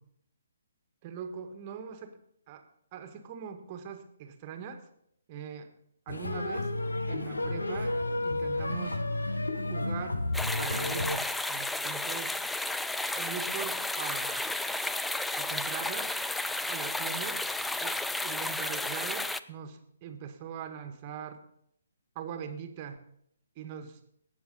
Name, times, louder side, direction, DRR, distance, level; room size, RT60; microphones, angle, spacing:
voice 1, 1.0-2.2 2.5-2.7 2.9-4.9 5.3-5.7 6.0-6.8 7.1-9.0 9.5-10.2 10.6-12.3 13.1-14.5 15.4-16.1 16.7-17.4 17.8-21.4 22.1-23.0 23.6-24.0, right 7 dB, 30° right, 7 dB, 1.6 m, -41 dB
sound 1, 6.1-11.2, left 2 dB, 75° left, 1.2 m, -31 dB
sound 2, 10.3-19.4, left 2 dB, 5° left, 0.4 m, -32 dB
18.0 x 7.1 x 5.3 m, 0.70 s
figure-of-eight pair, 135°, 0 cm